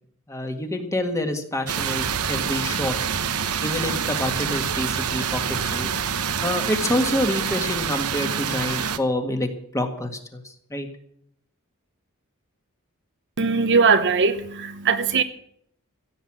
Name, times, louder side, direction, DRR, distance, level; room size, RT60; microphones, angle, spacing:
voice 1, 0.3-3.0 3.6-5.9 6.4-10.4 10.7-10.9, left 1 dB, 15° left, 1.9 m, -27 dB
sound 1, 1.7-9.0, right 7 dB, 85° right, 1.0 m, -26 dB
voice 2, 13.4-15.2, right 5 dB, 55° right, 0.9 m, -20 dB
16.0 x 8.1 x 8.9 m
head